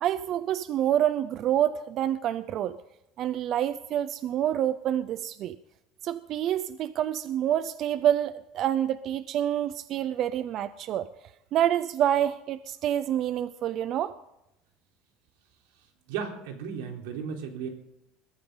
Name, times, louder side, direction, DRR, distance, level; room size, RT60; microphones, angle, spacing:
voice 1, 0.0-2.8 3.2-5.6 6.0-11.1 11.5-14.1, right 11 dB, 35° right, 14 dB, 0.5 m, -27 dB
voice 2, 16.1-17.7, right 7 dB, 85° right, 3 dB, 3.7 m, -35 dB
21.5 x 13.0 x 3.9 m, 0.85 s
cardioid pair, 175°, 0 cm